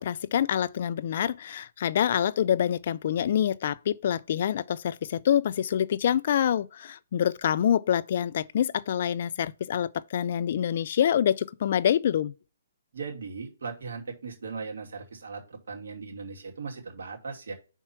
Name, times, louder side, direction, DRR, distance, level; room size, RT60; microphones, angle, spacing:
voice 1, 0.0-12.3, left 9 dB, 50° left, 0.4 m, -26 dB
voice 2, 12.9-17.5, right 4 dB, 75° right, 2.6 m, -38 dB
5.7 x 4.5 x 6.0 m
hypercardioid pair, 155°, 0 cm